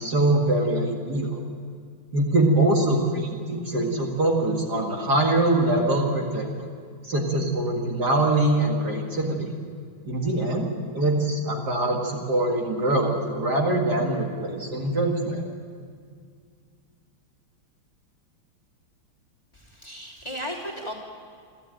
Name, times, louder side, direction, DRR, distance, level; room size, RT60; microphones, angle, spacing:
voice 1, 0.0-1.4 2.1-6.5 7.0-9.5 10.1-15.4, right 2 dB, 50° right, 0 dB, 2.6 m, -23 dB
voice 2, 19.5-20.9, equal, 15° left, -2 dB, 3.0 m, -35 dB
29.0 x 13.0 x 9.0 m, 2.1 s
omnidirectional pair, 2.3 m